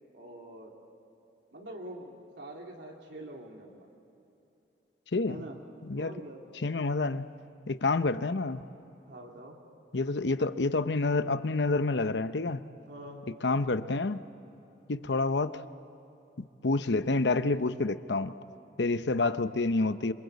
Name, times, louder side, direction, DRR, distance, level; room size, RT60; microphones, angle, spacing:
voice 1, 0.1-0.8 1.5-3.9 5.3-5.6 5.9-6.4 9.1-9.6 12.9-13.3, right 1 dB, 75° right, -1 dB, 3.2 m, -45 dB
voice 2, 6.6-7.3 7.7-8.6 9.9-12.7 13.4-14.2 14.9-15.6 16.4-18.3 18.8-20.1, left 3 dB, 75° left, 12 dB, 0.8 m, -28 dB
27.5 x 25.0 x 8.2 m, 2.9 s
head